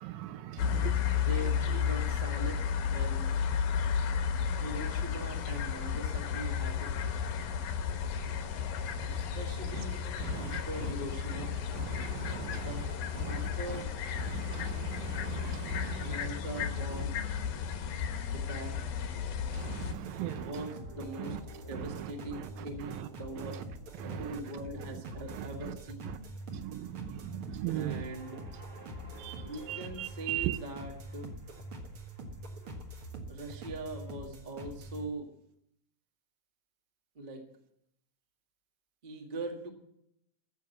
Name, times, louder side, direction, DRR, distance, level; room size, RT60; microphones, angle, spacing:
voice 1, 0.0-1.2 9.7-9.8 10.2-10.6 11.7-12.9 13.2-13.5 14.2-16.3 19.5-20.7 21.2-21.4 21.7-22.5 22.8-23.1 23.4-23.6 24.0-24.4 25.3-25.8 26.0-26.2 26.5-28.0 29.1-30.6, right 13 dB, 80° right, 2.3 m, -39 dB
sound 1, 0.6-19.9, left 7 dB, 75° left, 2.8 m, -33 dB
voice 2, 1.1-3.3 4.6-7.0 9.1-10.0 10.3-11.5 12.6-12.9 13.2-13.9 16.0-17.2 18.2-18.8 20.2-21.4 21.7-23.6 24.0-26.2 27.7-28.4 29.4-31.3 33.3-35.3 37.1-37.4 39.0-39.7, right 1 dB, 30° right, 0.9 m, -42 dB
sound 2, 19.8-35.0, right 1 dB, 50° right, 1.8 m, -44 dB
14.5 x 7.2 x 7.9 m
omnidirectional pair, 4.2 m